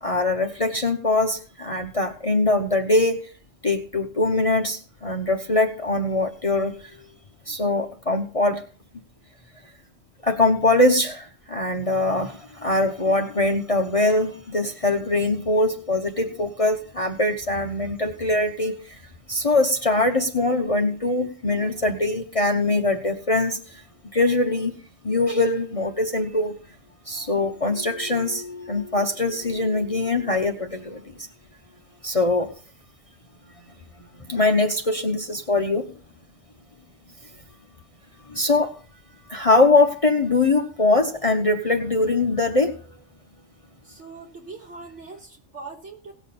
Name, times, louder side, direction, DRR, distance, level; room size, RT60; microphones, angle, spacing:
voice 1, 0.0-3.3 3.6-7.1 7.5-8.6 10.2-19.0 19.3-23.8 24.1-24.8 25.0-26.5 27.1-31.3 32.0-32.5 34.2-35.9 38.3-38.8 39.3-42.8, left 2 dB, 30° left, 5 dB, 0.9 m, -22 dB
voice 2, 43.8-46.1, right 4 dB, 60° right, -2 dB, 3.7 m, -41 dB
18.0 x 7.1 x 4.2 m, 0.40 s
omnidirectional pair, 1.3 m